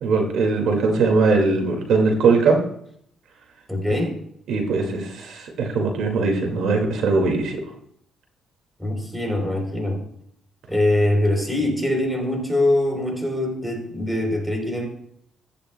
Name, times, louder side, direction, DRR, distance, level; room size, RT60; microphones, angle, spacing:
voice 1, 0.0-2.6 3.8-4.0 4.5-7.6, right 4 dB, 80° right, 3 dB, 2.1 m, -20 dB
voice 2, 3.7-4.2 8.8-10.0 10.7-14.9, left 1 dB, ahead, 2 dB, 3.6 m, -23 dB
15.0 x 10.5 x 2.2 m, 0.67 s
cardioid pair, 90°, 0 cm